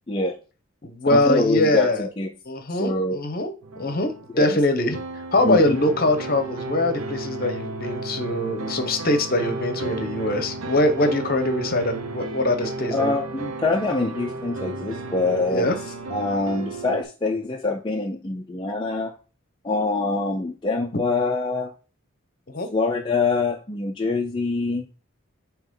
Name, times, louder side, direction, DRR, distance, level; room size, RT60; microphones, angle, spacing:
voice 1, 0.1-0.4 1.1-2.3 2.7-3.2 4.3-4.6 5.4-5.8 12.9-15.7 16.1-19.1 19.6-21.7 22.7-24.9, left 3 dB, 20° left, 0 dB, 0.5 m, -24 dB
voice 2, 0.8-2.1 2.5-3.5 3.8-5.0 5.3-13.1 15.5-15.7 22.5-22.7, left 1 dB, 45° left, 7 dB, 0.9 m, -23 dB
sound 1, 3.6-17.0, right 2 dB, 85° right, 0.8 m, -33 dB
8.8 x 3.0 x 3.8 m, 0.35 s
head